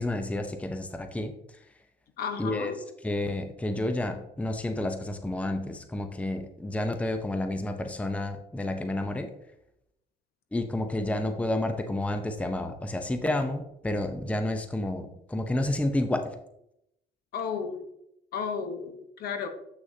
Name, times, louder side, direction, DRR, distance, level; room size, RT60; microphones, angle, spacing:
voice 1, 0.0-1.3 2.4-2.7 3.0-9.3 10.5-16.4, left 1 dB, 10° left, 7 dB, 0.6 m, -30 dB
voice 2, 2.2-2.8 17.3-17.8 18.3-19.5, left 6 dB, 65° left, 7 dB, 1.1 m, -33 dB
7.9 x 6.2 x 2.7 m, 0.78 s
cardioid pair, 110°, 17 cm